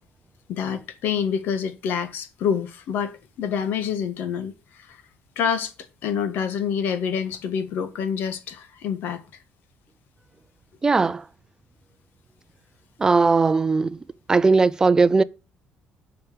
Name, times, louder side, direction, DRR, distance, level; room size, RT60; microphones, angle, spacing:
voice 1, 0.5-5.0 5.3-5.7 6.0-9.2, left 7 dB, 70° left, 1.5 m, -27 dB
voice 2, 10.8-11.2 13.0-14.0 14.3-15.2, right 4 dB, 20° right, 0.5 m, -18 dB
9.2 x 5.9 x 6.8 m
cardioid pair, 145°, 4 cm